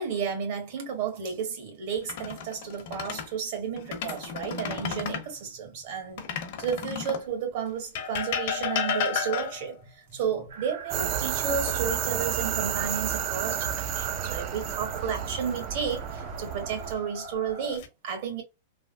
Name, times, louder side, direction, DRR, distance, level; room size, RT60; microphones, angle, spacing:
voice 1, 0.0-6.3 6.6-18.4, right 6 dB, 60° right, 1.4 m, -32 dB
sound 1, 1.9-3.3 3.8-5.3 6.2-7.3 8.0-9.8 11.7-12.4 12.8-13.0 15.9-16.5 17.2-17.9, left 7 dB, 60° left, 0.8 m, -33 dB
sound 2, 10.5-17.8, right 2 dB, 85° right, 1.3 m, -44 dB
sound 3, 10.9-16.9, right 10 dB, 45° right, 0.4 m, -31 dB
3.3 x 2.0 x 2.6 m
hypercardioid pair, 130°, 0 cm